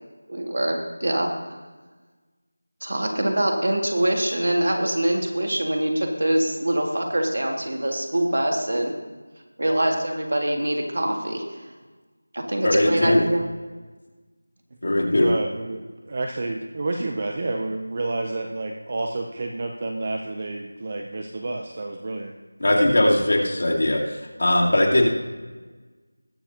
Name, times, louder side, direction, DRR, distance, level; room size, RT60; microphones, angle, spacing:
voice 1, 0.3-1.3 2.8-8.9 9.6-11.6 12.3-13.5, right 1 dB, 55° right, 1 dB, 1.8 m, -24 dB
voice 2, 12.6-13.3 14.8-15.3 22.6-25.1, left 1 dB, 50° left, -3 dB, 2.4 m, -20 dB
voice 3, 15.1-22.3, right 2 dB, 20° right, 3 dB, 0.4 m, -29 dB
20.0 x 7.1 x 2.8 m, 1.3 s
figure-of-eight pair, 180°, 0 cm